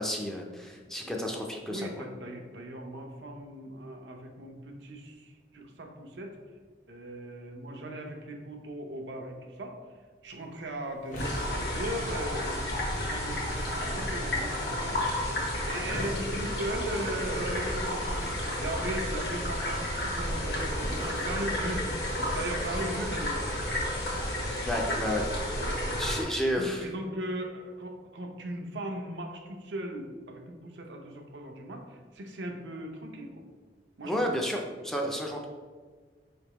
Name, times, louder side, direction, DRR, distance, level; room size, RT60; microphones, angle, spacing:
voice 1, 0.0-1.9 24.6-25.2 26.0-26.9 34.0-35.4, equal, 5° left, 0 dB, 0.4 m, -31 dB
voice 2, 0.7-1.2 1.6-6.4 6.9-9.8 10.2-15.0 15.6-23.5 24.7-24.8 25.5-25.8 26.1-33.3 34.0-34.3, right 1 dB, 85° right, 2 dB, 0.7 m, -38 dB
sound 1, 10.2-22.3, equal, 45° left, 0.9 m, -47 dB
sound 2, 11.2-26.2, left 1 dB, 60° left, 1.2 m, -31 dB
4.8 x 3.4 x 2.9 m, 1.5 s
head